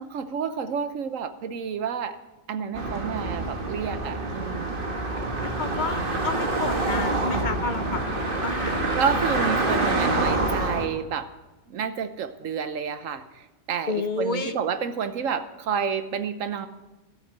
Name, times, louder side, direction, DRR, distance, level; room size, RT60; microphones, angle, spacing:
voice 1, 0.0-2.2 2.5-4.9 9.0-11.3 11.7-16.7, right 7 dB, 80° right, 11 dB, 1.3 m, -30 dB
sound 1, 2.7-10.9, right 2 dB, 45° right, 1.6 m, -26 dB
voice 2, 5.4-9.2 13.9-14.6, left 4 dB, 45° left, 9 dB, 0.8 m, -31 dB
14.0 x 8.2 x 8.0 m, 1.0 s
omnidirectional pair, 1.3 m